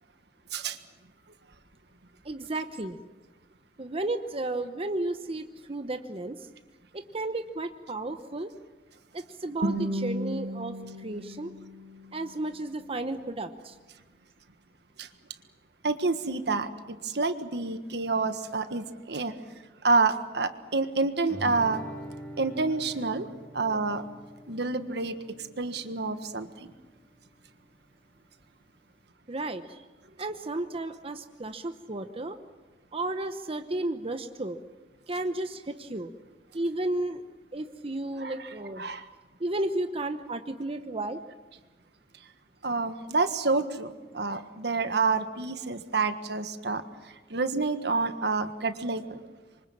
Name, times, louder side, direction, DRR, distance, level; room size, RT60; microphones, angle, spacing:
voice 1, 2.2-3.0 3.8-6.5 6.9-8.5 9.1-11.5 12.1-13.7 29.3-29.8 30.2-32.4 32.9-34.6 35.1-36.1 36.5-37.2 37.5-38.8 39.4-41.2, right 2 dB, 35° right, 8 dB, 0.9 m, -33 dB
Guitar, 9.6-12.6, equal, 85° right, 2.3 m, -34 dB
voice 2, 15.8-19.4 19.8-21.8 22.4-23.3 23.5-24.0 24.5-25.2 25.6-26.7 38.2-39.0 42.6-49.2, right 3 dB, 70° right, 10 dB, 1.5 m, -28 dB
Guitar 2, 21.3-26.4, right 1 dB, 5° left, 4.2 m, -44 dB
27.0 x 24.5 x 7.3 m, 1.3 s
head